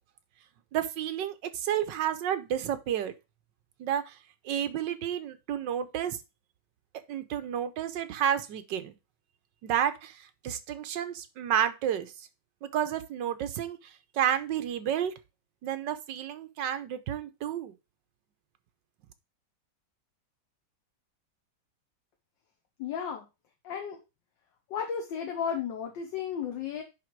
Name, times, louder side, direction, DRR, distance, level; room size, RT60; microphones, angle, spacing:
voice 1, 0.7-3.1 3.8-4.1 4.4-6.2 7.1-8.9 9.6-10.1 10.4-12.1 12.6-13.8 14.1-15.1 15.6-17.7, right 10 dB, 70° right, 1.4 m, -30 dB
voice 2, 22.8-23.3 23.6-24.0 24.7-26.8, left 7 dB, 70° left, 1.6 m, -33 dB
10.0 x 3.5 x 4.6 m
omnidirectional pair, 2.1 m